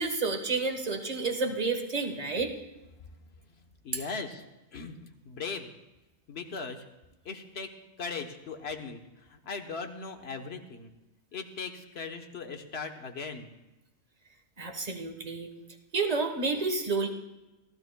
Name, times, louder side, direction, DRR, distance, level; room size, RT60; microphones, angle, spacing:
voice 1, 0.0-2.5 14.6-15.5 15.9-17.1, right 3 dB, 35° right, 4 dB, 1.3 m, -30 dB
voice 2, 3.4-4.4 4.7-5.0 5.2-5.7 6.3-6.8 7.2-7.7 8.0-10.9 11.3-13.5, left 4 dB, 70° left, 5 dB, 1.3 m, -39 dB
28.0 x 12.0 x 2.2 m, 1.0 s
omnidirectional pair, 1.1 m